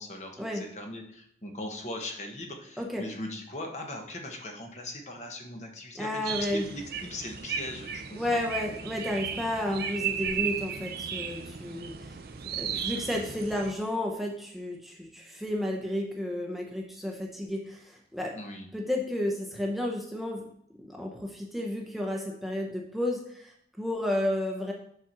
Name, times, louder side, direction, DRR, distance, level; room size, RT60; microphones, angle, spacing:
voice 1, 0.0-8.4 12.6-13.3 18.3-18.7, left 1 dB, 40° left, 2 dB, 1.2 m, -40 dB
voice 2, 5.9-6.6 8.2-12.2 12.6-18.3 18.7-20.4 20.8-24.7, left 1 dB, ahead, 0 dB, 0.8 m, -32 dB
sound 1, 6.3-13.7, right 7 dB, 55° right, 0.6 m, -35 dB
7.3 x 4.3 x 6.1 m, 0.69 s
head